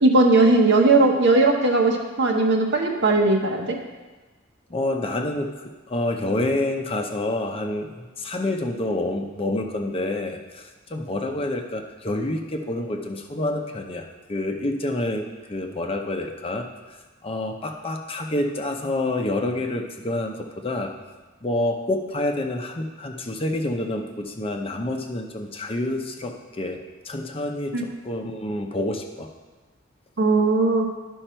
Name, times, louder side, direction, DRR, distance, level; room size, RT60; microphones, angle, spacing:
voice 1, 0.0-3.8 27.7-27.8 30.2-30.9, right 2 dB, 60° right, 2 dB, 1.2 m, -18 dB
voice 2, 4.7-7.9 8.2-15.2 15.5-17.0 17.2-20.9 21.4-26.8 27.0-29.3, left 1 dB, 30° left, 3 dB, 0.7 m, -28 dB
11.5 x 5.5 x 4.4 m, 1.2 s
head